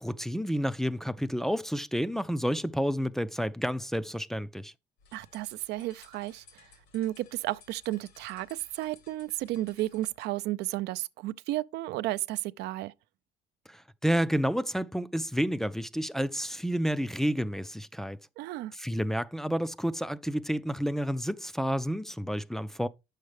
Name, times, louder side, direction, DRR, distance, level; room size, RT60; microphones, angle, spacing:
voice 1, 0.0-4.7 13.7-18.2 18.8-22.9, equal, ahead, 0.4 m, -30 dB
sound 1, 5.0-10.2, left 6 dB, 80° left, 2.0 m, -58 dB
voice 2, 5.1-12.9 18.4-18.7, right 16 dB, 80° right, 0.4 m, -33 dB
8.6 x 6.6 x 3.2 m
cardioid pair, 110°, 17 cm